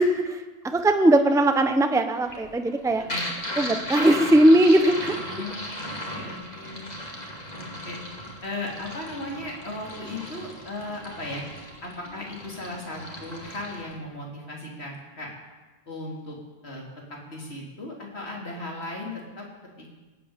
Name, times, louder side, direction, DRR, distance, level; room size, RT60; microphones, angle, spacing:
voice 1, 0.0-3.1 3.5-5.5, right 1 dB, 5° right, 7 dB, 0.7 m, -20 dB
sound 1, 2.1-14.0, equal, 40° left, 2.4 m, -36 dB
voice 2, 5.3-6.9 7.5-8.0 8.4-11.5 11.8-15.3 15.9-16.4 16.6-16.8 17.3-19.5 19.8-20.0, left 2 dB, 85° left, -2 dB, 3.6 m, -36 dB
17.5 x 8.7 x 8.9 m, 1.3 s
omnidirectional pair, 1.1 m